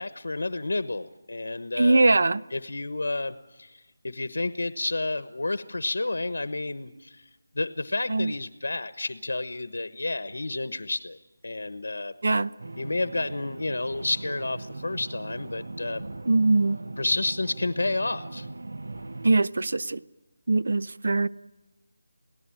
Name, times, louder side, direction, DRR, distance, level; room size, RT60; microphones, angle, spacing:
voice 1, 0.0-2.1 2.5-7.3 7.5-11.2 11.4-12.1 12.8-16.0 17.0-18.5, left 2 dB, 90° left, 1.1 m, -30 dB
voice 2, 1.8-2.4 8.1-8.3 12.2-12.5 16.3-16.8 19.2-20.0 20.5-21.3, right 2 dB, 50° right, 0.7 m, -21 dB
sound 1, 12.6-19.3, right 2 dB, 70° right, 1.0 m, -39 dB
28.0 x 18.0 x 8.8 m
figure-of-eight pair, 180°, 0 cm